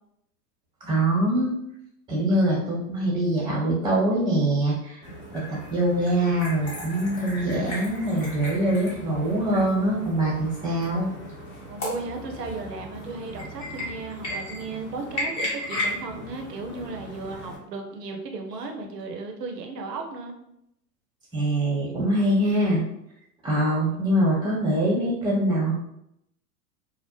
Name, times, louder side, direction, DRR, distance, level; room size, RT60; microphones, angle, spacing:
voice 1, 0.8-1.5 2.1-5.1 5.3-11.1 21.3-22.8 23.4-25.7, right 1 dB, 15° right, -5 dB, 0.9 m, -23 dB
sound 1, 5.0-17.6, left 1 dB, 30° left, 1.0 m, -36 dB
voice 2, 11.7-20.3, right 3 dB, 85° right, 3 dB, 0.6 m, -35 dB
2.4 x 2.0 x 3.0 m, 0.79 s
hypercardioid pair, 100°, 47 cm